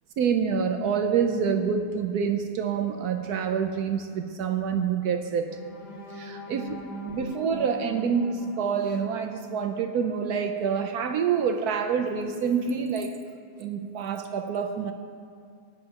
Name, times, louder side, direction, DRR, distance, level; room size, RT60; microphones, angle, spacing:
voice 1, 0.2-5.5 6.1-6.7 7.0-13.2 13.6-14.9, right 6 dB, 70° right, 6 dB, 0.9 m, -27 dB
sound 1, 5.5-11.4 11.9-12.1 12.4-12.7, left 1 dB, 55° left, 2.0 m, -42 dB
18.5 x 10.0 x 2.9 m, 2.2 s
omnidirectional pair, 2.2 m